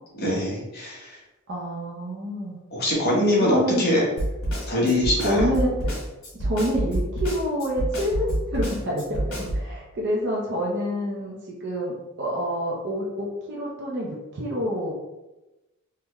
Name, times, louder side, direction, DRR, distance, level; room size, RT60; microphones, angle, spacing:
voice 1, 0.2-1.2 2.7-4.0 4.7-5.4, left 1 dB, 45° left, -5 dB, 1.0 m, -23 dB
voice 2, 1.5-2.6 3.4-3.8 5.2-5.7 6.4-9.2 9.5-11.4 11.6-14.9, equal, 50° right, -3 dB, 0.6 m, -27 dB
Snare drum, 4.2-9.7, right 1 dB, 80° left, 1.5 m, -27 dB
3.5 x 2.2 x 3.0 m, 1.0 s
head